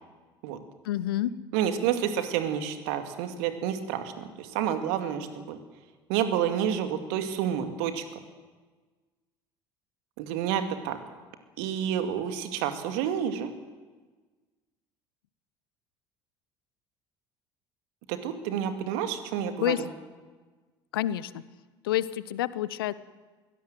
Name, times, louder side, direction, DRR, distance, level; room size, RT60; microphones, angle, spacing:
voice 1, 0.8-1.3 19.6-19.8 20.9-21.4 21.8-22.9, left 13 dB, 70° left, 18 dB, 0.8 m, -28 dB
voice 2, 1.5-5.6 6.1-8.0 10.2-11.0 11.6-13.5 18.1-19.9, right 9 dB, 65° right, 8 dB, 2.2 m, -29 dB
23.0 x 17.5 x 7.7 m, 1.3 s
figure-of-eight pair, 65°, 12 cm